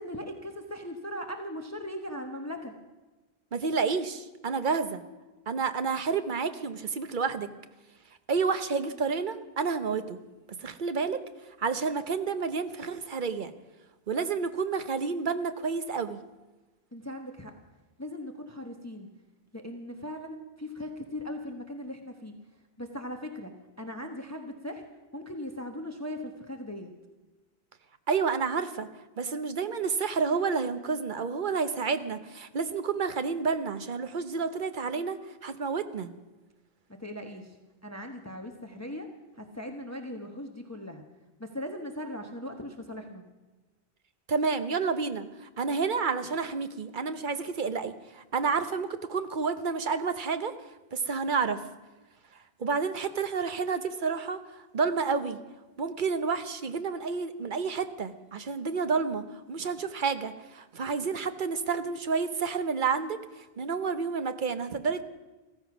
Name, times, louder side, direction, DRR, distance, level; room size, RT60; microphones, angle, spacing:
voice 1, 0.0-2.7 16.9-17.5 18.0-19.1 19.5-22.4 22.8-24.9 25.1-26.9 36.9-37.6 37.8-39.1 39.4-41.0 41.4-43.2, left 1 dB, 15° left, 4 dB, 1.0 m, -39 dB
voice 2, 3.5-5.0 5.5-7.5 8.3-10.2 10.6-11.2 11.6-13.5 14.1-16.2 28.1-28.9 29.2-36.1 44.3-50.5 50.9-51.6 52.6-55.4 55.8-65.0, right 5 dB, 50° right, 10 dB, 1.0 m, -30 dB
15.0 x 14.5 x 6.0 m, 1.2 s
omnidirectional pair, 1.1 m